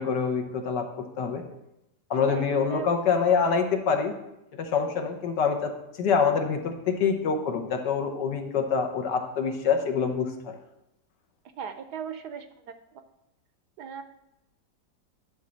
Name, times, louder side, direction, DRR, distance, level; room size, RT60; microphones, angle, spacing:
voice 1, 0.0-1.4 2.1-4.1 4.6-5.7 6.0-10.5, left 6 dB, 70° left, 4 dB, 1.6 m, -26 dB
voice 2, 2.3-2.9 11.6-12.8 13.8-14.0, right 7 dB, 70° right, 10 dB, 1.1 m, -37 dB
11.0 x 4.1 x 6.2 m, 0.90 s
omnidirectional pair, 2.0 m